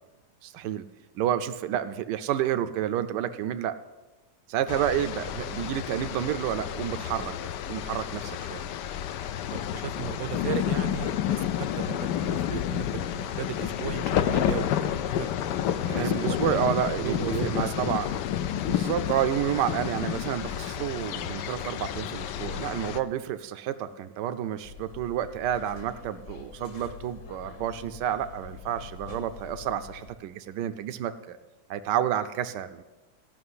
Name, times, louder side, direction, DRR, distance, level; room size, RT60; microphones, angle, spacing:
voice 1, 0.4-0.8 1.1-3.8 4.5-8.6 15.9-18.2 18.6-31.4 31.7-32.8, right 10 dB, 85° right, 10 dB, 1.3 m, -30 dB
sound 1, 4.7-23.0, left 10 dB, 85° left, 1.3 m, -30 dB
voice 2, 9.5-15.3 15.9-16.6 17.0-18.0, right 11 dB, 70° right, 15 dB, 0.9 m, -36 dB
sound 2, 24.6-30.1, left 5 dB, 50° left, 1.4 m, -45 dB
15.5 x 5.9 x 9.6 m, 1.1 s
omnidirectional pair, 1.8 m